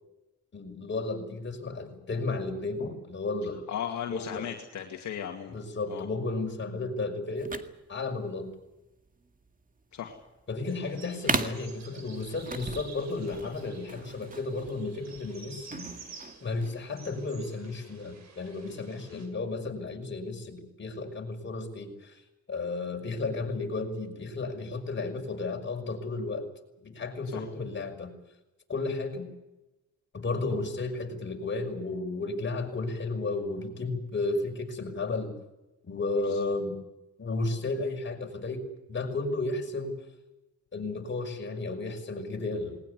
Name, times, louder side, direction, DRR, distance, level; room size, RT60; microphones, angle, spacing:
voice 1, 0.5-3.6 4.1-4.5 5.5-7.6 7.9-8.5 10.5-15.9 16.4-22.2 22.5-26.5 26.8-28.1 28.7-29.3 30.1-35.4 35.8-36.8 37.2-40.0 40.7-42.8, left 3 dB, 40° left, 2 dB, 5.7 m, -33 dB
voice 2, 3.7-5.6 5.9-6.1 9.9-10.1 19.1-19.3 27.3-27.5 36.2-36.5, left 9 dB, 70° left, 2 dB, 2.3 m, -37 dB
sound 1, 7.4-16.8, right 4 dB, 25° right, 2.0 m, -38 dB
sound 2, 10.7-19.3, right 4 dB, 60° right, 6.1 m, -50 dB
20.0 x 19.5 x 9.6 m, 1.0 s
cardioid pair, 90°, 30 cm